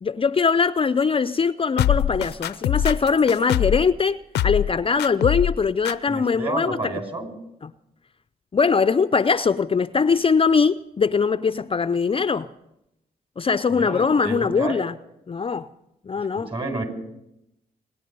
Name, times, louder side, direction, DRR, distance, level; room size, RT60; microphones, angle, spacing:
voice 1, 0.0-4.2 4.4-7.0 7.6-7.7 8.5-12.5 13.4-14.9 15.3-15.7 16.1-16.5, left 5 dB, 35° left, 0.5 m, -21 dB
sound 1, 1.8-3.9 4.3-4.7 5.0-5.6 5.8-5.9, left 11 dB, 85° left, 0.6 m, -23 dB
voice 2, 6.1-7.3 13.7-14.8 16.4-16.8, right 2 dB, 35° right, 5.0 m, -30 dB
26.5 x 10.0 x 5.3 m
supercardioid pair, 55°, 17 cm